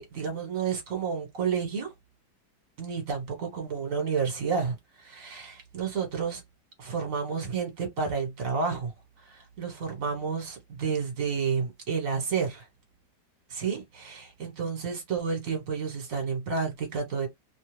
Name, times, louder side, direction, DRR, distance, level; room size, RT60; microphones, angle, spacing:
voice 1, 0.0-1.9 2.8-6.4 6.8-8.9 9.2-12.6 13.5-17.3, right 5 dB, 55° right, 1.5 m, -30 dB
3.2 x 2.2 x 3.1 m
omnidirectional pair, 1.8 m